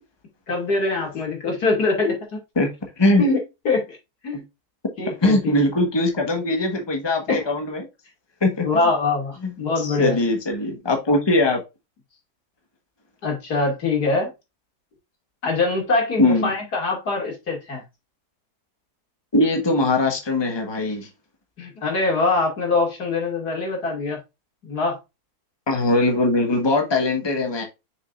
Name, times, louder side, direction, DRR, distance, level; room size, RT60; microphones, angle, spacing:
voice 1, 0.5-2.4 3.2-3.4 3.6-3.9 4.2-4.4 5.0-5.6 7.3-7.4 8.6-10.1 13.2-14.3 15.4-17.8 21.6-24.2 24.6-25.0, left 3 dB, 85° left, 3.2 m, -23 dB
voice 2, 5.2-7.9 8.4-8.9 9.4-11.6 16.2-16.5 19.3-21.1 25.7-27.6, left 2 dB, 15° left, 1.4 m, -21 dB
6.4 x 6.4 x 2.6 m
omnidirectional pair, 1.6 m